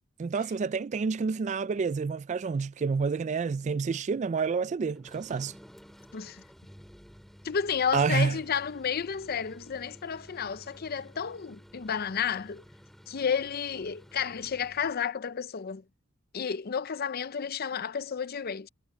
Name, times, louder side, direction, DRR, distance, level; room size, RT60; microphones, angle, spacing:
voice 1, 0.2-5.5 7.9-8.4, right 5 dB, 35° right, 0.3 m, -28 dB
sound 1, 4.9-15.0, equal, ahead, 4.4 m, -53 dB
voice 2, 6.1-6.4 7.4-12.6 13.1-15.8 16.3-18.7, left 7 dB, 50° left, 0.6 m, -31 dB
head